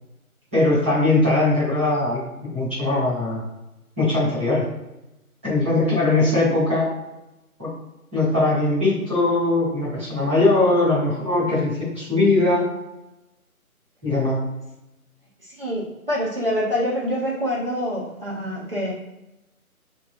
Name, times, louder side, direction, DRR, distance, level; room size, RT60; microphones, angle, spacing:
voice 1, 0.5-3.4 4.0-4.6 5.4-6.9 7.6-7.7 8.1-12.7 14.0-14.4, left 2 dB, 10° right, -15 dB, 1.0 m, -20 dB
voice 2, 15.6-18.9, equal, 40° right, -6 dB, 0.9 m, -26 dB
3.8 x 3.0 x 2.6 m, 0.96 s
figure-of-eight pair, 165°, 44 cm